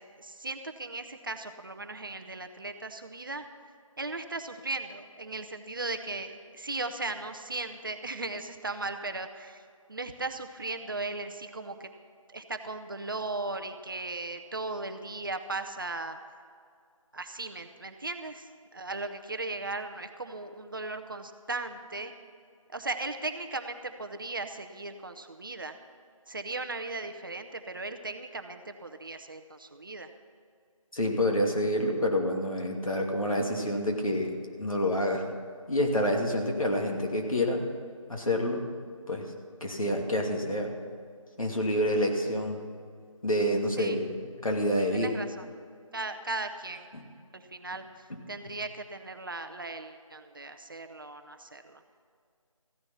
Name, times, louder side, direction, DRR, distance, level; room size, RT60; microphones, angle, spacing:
voice 1, 0.0-3.5 4.0-9.6 9.9-11.9 12.3-16.2 17.1-22.1 22.7-25.8 26.3-30.1 43.8-44.0 44.9-45.5 45.9-46.9 47.3-51.8, right 3 dB, 40° right, 8 dB, 0.8 m, -37 dB
voice 2, 30.9-35.3 35.7-37.7 38.1-38.6 39.1-39.3 39.6-40.7 41.4-42.6 43.2-44.1 44.4-45.1, equal, 75° left, 1 dB, 2.6 m, -28 dB
15.0 x 10.5 x 5.8 m, 2.2 s
figure-of-eight pair, 165°, 18 cm